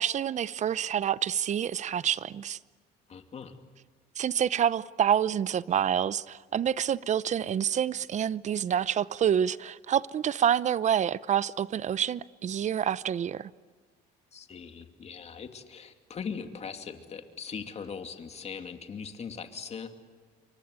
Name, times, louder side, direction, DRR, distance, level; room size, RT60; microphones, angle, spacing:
voice 1, 0.0-2.6 4.2-13.5, right 9 dB, 45° right, 0.7 m, -27 dB
voice 2, 3.1-3.6 14.3-19.9, left 6 dB, 40° left, 2.6 m, -40 dB
28.5 x 24.0 x 8.3 m
cardioid pair, 110°, 17 cm